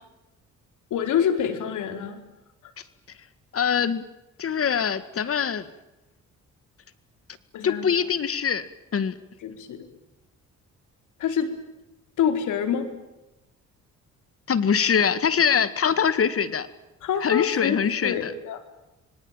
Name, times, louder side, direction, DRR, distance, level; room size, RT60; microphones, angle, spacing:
voice 1, 0.9-2.2 7.5-7.9 9.4-9.9 11.2-11.5 12.2-12.9 17.0-17.8 18.0-18.6, left 8 dB, 80° left, 9 dB, 4.4 m, -26 dB
voice 2, 3.5-4.0 4.4-5.7 7.6-8.7 8.9-9.2 14.5-16.7 17.2-18.3, left 7 dB, 50° left, 15 dB, 2.0 m, -23 dB
25.5 x 25.0 x 9.1 m, 0.97 s
cardioid pair, 90°, 30 cm